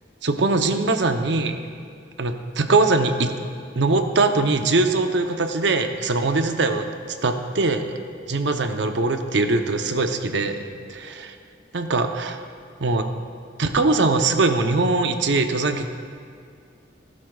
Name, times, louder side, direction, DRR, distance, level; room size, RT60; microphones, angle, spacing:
voice 1, 0.2-1.7 2.2-3.3 3.8-6.9 7.2-7.9 8.3-10.6 10.9-11.3 11.7-12.4 12.8-13.1 13.6-15.9, right 3 dB, 75° right, 6 dB, 0.7 m, -21 dB
17.0 x 11.5 x 2.3 m, 2.2 s
head